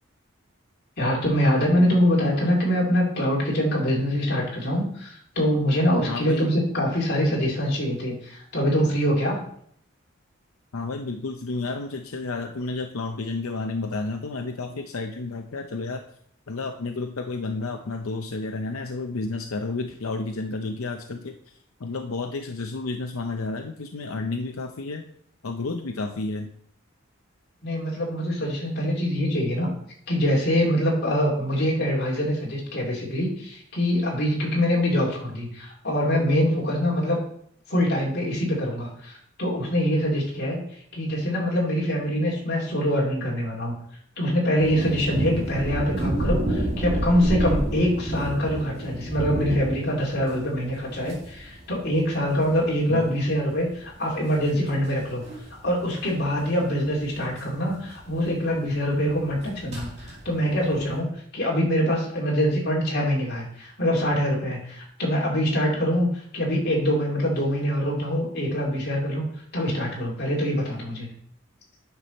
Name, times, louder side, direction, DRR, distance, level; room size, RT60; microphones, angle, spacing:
voice 1, 1.0-9.4 27.6-29.7 30.1-37.2 37.7-40.6 40.9-43.7 44.2-55.2 55.6-69.3 69.5-71.1, equal, 50° left, -4 dB, 3.1 m, -24 dB
voice 2, 6.1-6.5 10.7-16.0 16.5-25.1 25.4-26.5 52.9-53.1, left 3 dB, 85° left, 5 dB, 0.7 m, -31 dB
sound 1, 44.6-61.0, right 1 dB, 30° right, 2.3 m, -31 dB
9.6 x 6.0 x 4.1 m, 0.64 s
head